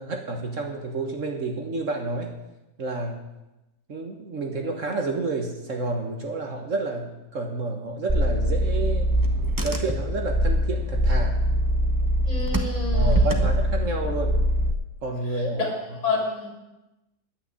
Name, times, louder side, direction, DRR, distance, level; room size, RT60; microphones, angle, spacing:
voice 1, 0.0-2.3 2.8-3.2 3.9-9.1 9.6-11.4 12.9-14.4 15.0-15.7, right 3 dB, 50° right, 3 dB, 1.6 m, -30 dB
Car / Engine, 8.1-14.7, equal, 15° right, 0.8 m, -23 dB
voice 2, 12.3-13.5 15.6-15.7 16.0-16.5, left 3 dB, 45° left, 0 dB, 3.6 m, -28 dB
9.7 x 8.7 x 9.6 m, 0.99 s
omnidirectional pair, 1.7 m